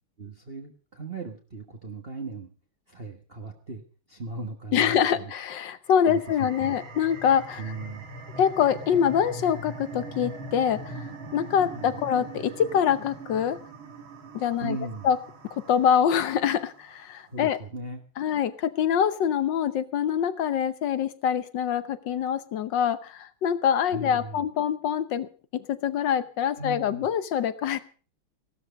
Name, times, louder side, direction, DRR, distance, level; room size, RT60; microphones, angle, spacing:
voice 1, 0.2-2.5 2.9-3.8 4.1-5.3 6.1-6.8 7.6-8.1 11.7-11.9 14.6-15.1 17.3-18.0 23.9-24.4 26.6-27.1, right 2 dB, 30° right, 2 dB, 1.4 m, -38 dB
voice 2, 4.7-7.6 8.4-11.0 11.3-13.6 14.3-14.8 15.0-15.2 15.7-17.6 18.2-27.8, left 8 dB, 65° left, 13 dB, 1.5 m, -25 dB
sound 1, 5.8-17.0, right 2 dB, 75° right, 2.5 m, -42 dB
16.0 x 12.5 x 5.2 m, 0.40 s
omnidirectional pair, 2.3 m